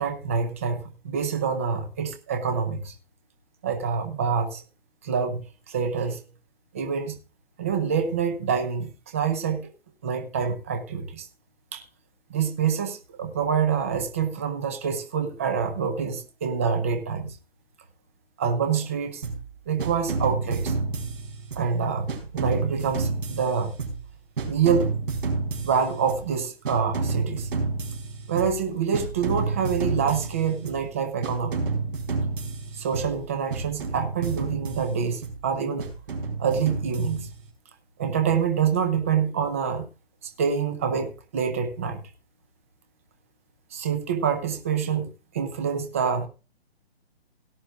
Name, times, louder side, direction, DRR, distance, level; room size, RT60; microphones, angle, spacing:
voice 1, 0.0-2.9 3.6-4.6 5.0-6.2 6.7-7.2 7.6-9.7 10.0-11.3 11.7-11.8 12.3-17.4 18.4-19.2 19.7-20.7 21.6-23.7 24.4-24.9 25.6-27.5 28.3-31.6 32.7-35.9 36.4-37.3 38.0-39.9 40.2-42.0 43.7-45.1 45.3-46.3, right 6 dB, 15° right, 0.6 m, -26 dB
sound 1, 19.2-19.5 19.8-21.7 22.1-24.1 24.4-26.3 26.6-28.7 28.9-30.9 31.2-33.2 33.5-35.4 35.8-37.5, right 4 dB, 55° right, 4.4 m, -30 dB
17.5 x 10.5 x 2.4 m
hypercardioid pair, 175°, 31 cm